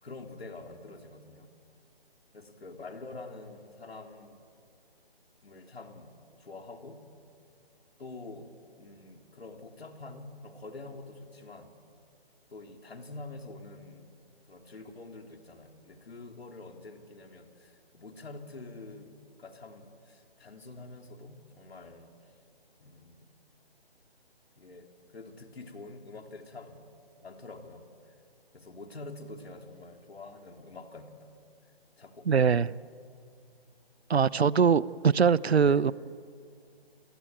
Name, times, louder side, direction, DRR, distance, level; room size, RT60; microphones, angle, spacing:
voice 1, 0.0-1.5 2.3-4.5 5.4-7.0 8.0-11.7 12.5-14.1 14.5-22.1 22.8-23.3 24.6-26.9 27.2-28.1 28.5-31.3 32.0-32.6 35.6-35.8, left 3 dB, 75° left, 4 dB, 3.7 m, -46 dB
voice 2, 32.3-32.7 34.1-35.9, right 6 dB, 80° right, 20 dB, 0.9 m, -22 dB
28.5 x 21.0 x 9.3 m, 2.3 s
hypercardioid pair, 165°, 31 cm